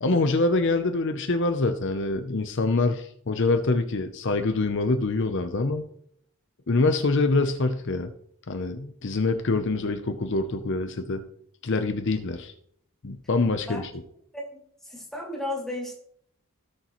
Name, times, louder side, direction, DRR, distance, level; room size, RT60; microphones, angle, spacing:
voice 1, 0.0-5.9 6.7-8.1 8.5-11.2 11.6-12.5 13.0-13.9, left 3 dB, 55° left, 7 dB, 0.6 m, -25 dB
voice 2, 14.8-16.0, left 1 dB, ahead, -3 dB, 2.6 m, -33 dB
17.0 x 6.6 x 3.1 m, 0.68 s
head